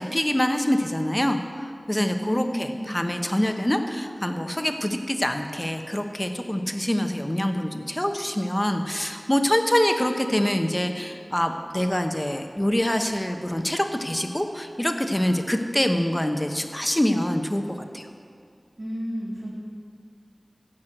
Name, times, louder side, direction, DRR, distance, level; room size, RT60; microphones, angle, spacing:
voice 1, 0.0-17.6 17.9-18.1, left 1 dB, 20° left, 5 dB, 1.1 m, -25 dB
voice 2, 2.2-2.9 18.8-19.5, equal, 55° right, -7 dB, 2.9 m, -32 dB
16.0 x 6.4 x 7.8 m, 2.3 s
wide cardioid pair, 55°, 0 cm